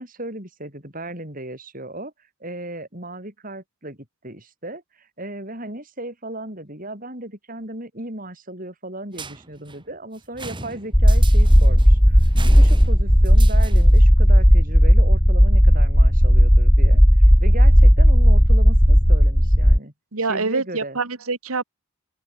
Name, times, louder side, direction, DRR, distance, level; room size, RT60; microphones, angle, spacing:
voice 1, 0.0-2.1 2.4-4.0 4.2-17.0 17.4-21.0, right 1 dB, 40° right, 7.6 m, -36 dB
sound 1, 9.1-14.1, right 3 dB, 20° right, 2.9 m, -39 dB
sound 2, 10.9-19.8, equal, ahead, 0.5 m, -13 dB
voice 2, 20.1-21.6, right 3 dB, 90° right, 2.0 m, -25 dB
open air
head